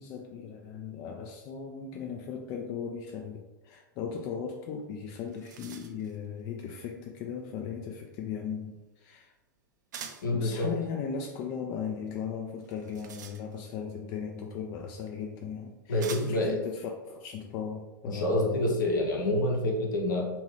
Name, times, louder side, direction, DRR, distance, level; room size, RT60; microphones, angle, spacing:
voice 1, 0.0-9.3 10.3-18.6, left 7 dB, 35° left, 1 dB, 0.4 m, -37 dB
sound 1, 4.8-4.9 5.1-6.2 9.9-10.4 12.6-13.8 14.9-15.0 16.0-16.5, right 7 dB, 60° right, 0.4 m, -45 dB
voice 2, 10.2-10.7 15.9-16.6 18.1-20.3, left 1 dB, 65° left, 0 dB, 0.8 m, -27 dB
2.8 x 2.6 x 3.3 m, 1.0 s
figure-of-eight pair, 90°, 11 cm